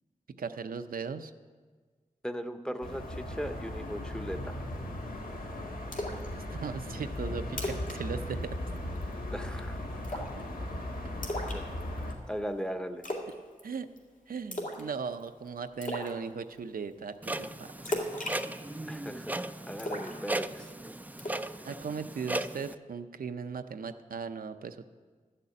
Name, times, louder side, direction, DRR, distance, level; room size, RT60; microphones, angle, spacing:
voice 1, 0.3-1.3 6.3-8.6 13.6-13.9 14.3-17.9 21.7-24.8, right 5 dB, 80° right, 9 dB, 0.6 m, -38 dB
voice 2, 2.2-4.7 9.3-10.2 11.4-11.7 12.3-13.0 18.9-20.7, equal, 5° left, 8 dB, 0.8 m, -38 dB
sound 1, 2.8-12.1, left 1 dB, 85° left, 1.6 m, -37 dB
Splash splatter, 5.9-6.3 6.6-6.7 7.1-7.2 7.5-8.0 8.2-8.4 8.8-9.1 10.0-10.4 11.2-12.1 13.0-13.3 13.6-14.0 14.5-14.9 15.2-15.3 15.8-16.1 17.8-19.1 19.8-20.7 21.2-21.5, left 1 dB, 65° left, 2.2 m, -35 dB
Clock, 17.2-22.7, right 1 dB, 10° right, 0.3 m, -37 dB
12.0 x 6.7 x 8.5 m, 1.5 s
wide cardioid pair, 85°, 15 cm